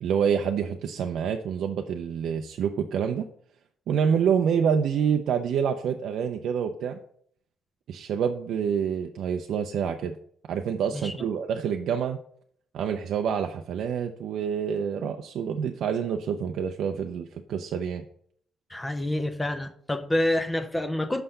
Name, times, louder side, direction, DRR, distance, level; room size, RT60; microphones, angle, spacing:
voice 1, 0.0-3.3 3.9-7.0 7.9-10.2 10.5-12.2 12.7-18.0, right 7 dB, 75° right, 5 dB, 0.5 m, -27 dB
voice 2, 10.9-11.3 18.7-21.2, left 1 dB, 15° left, 8 dB, 0.7 m, -28 dB
5.7 x 5.7 x 6.6 m, 0.64 s
cardioid pair, 90°, 0 cm